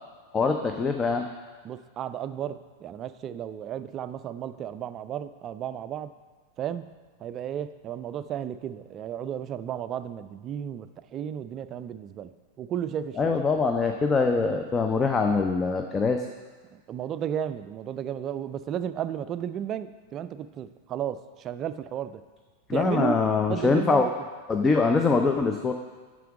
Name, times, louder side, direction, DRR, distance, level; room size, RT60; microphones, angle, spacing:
voice 1, 0.3-1.3 13.2-16.3 22.7-24.1 24.5-25.7, left 4 dB, 20° left, 5 dB, 0.5 m, -23 dB
voice 2, 1.6-6.1 6.6-6.9 7.2-12.3 12.6-13.3 16.7-22.2 22.7-23.2 23.5-24.1, right 9 dB, 30° right, 12 dB, 0.4 m, -33 dB
9.2 x 6.2 x 4.8 m, 1.4 s
figure-of-eight pair, 90°, 0 cm